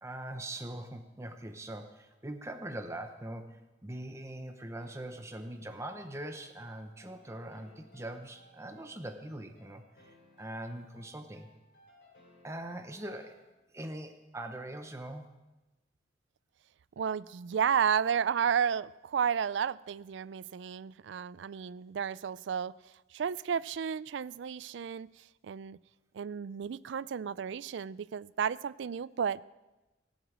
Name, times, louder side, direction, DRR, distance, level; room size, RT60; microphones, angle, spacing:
voice 1, 0.0-11.5 12.4-13.4 13.7-15.3, right 1 dB, 15° right, 6 dB, 0.8 m, -42 dB
sound 1, 4.8-13.7, left 2 dB, 65° left, 3.7 m, -62 dB
voice 2, 17.0-22.7 23.1-25.8 26.1-29.4, right 7 dB, 75° right, 20 dB, 0.4 m, -32 dB
17.5 x 8.0 x 7.4 m, 1.1 s
head